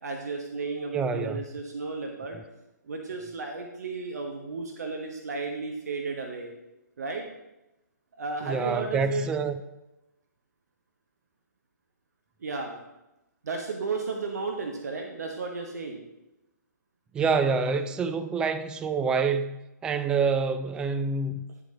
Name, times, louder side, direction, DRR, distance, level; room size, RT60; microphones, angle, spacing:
voice 1, 0.0-2.4 2.8-6.5 7.0-7.2 8.1-9.3 12.4-12.8 13.4-16.0, right 4 dB, 60° right, 2 dB, 1.1 m, -33 dB
voice 2, 0.9-1.4 8.4-9.6 17.1-21.4, right 5 dB, 10° right, 9 dB, 0.3 m, -27 dB
9.7 x 7.4 x 2.9 m, 0.93 s
figure-of-eight pair, 130°, 10 cm